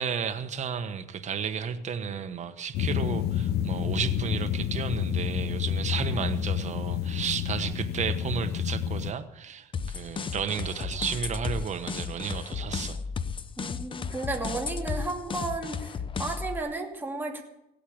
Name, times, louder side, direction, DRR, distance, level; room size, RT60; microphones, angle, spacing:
voice 1, 0.0-13.0, right 7 dB, 45° right, 9 dB, 1.3 m, -33 dB
sound 1, 2.7-9.1, left 10 dB, 70° left, 0.7 m, -29 dB
sound 2, 9.7-16.6, left 5 dB, 30° left, 0.7 m, -34 dB
voice 2, 13.6-17.4, right 2 dB, 10° right, 1 dB, 2.6 m, -33 dB
16.5 x 8.5 x 8.7 m, 0.88 s
cardioid pair, 110°, 17 cm